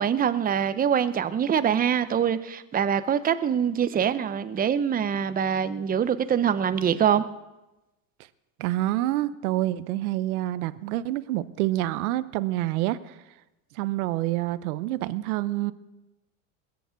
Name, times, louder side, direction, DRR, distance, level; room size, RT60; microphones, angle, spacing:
voice 1, 0.0-7.2, right 8 dB, 20° right, 12 dB, 0.7 m, -24 dB
voice 2, 8.6-13.2 13.7-15.7, right 15 dB, 80° right, 15 dB, 0.9 m, -27 dB
20.5 x 7.1 x 8.2 m, 1.0 s
supercardioid pair, 115°, 43 cm